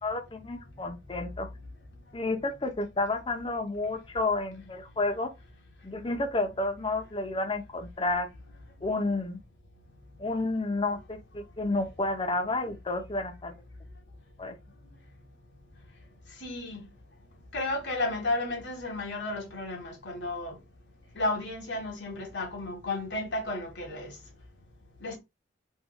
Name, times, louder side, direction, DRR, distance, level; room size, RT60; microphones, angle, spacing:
voice 1, 0.0-1.5 2.1-5.3 5.8-8.3 8.8-9.4 10.2-13.5 14.4-14.5, left 2 dB, 30° left, 0.7 m, -30 dB
voice 2, 16.4-16.8 17.5-20.5 21.1-24.1 25.0-25.2, left 2 dB, 75° left, 1.6 m, -33 dB
3.6 x 3.2 x 2.2 m
head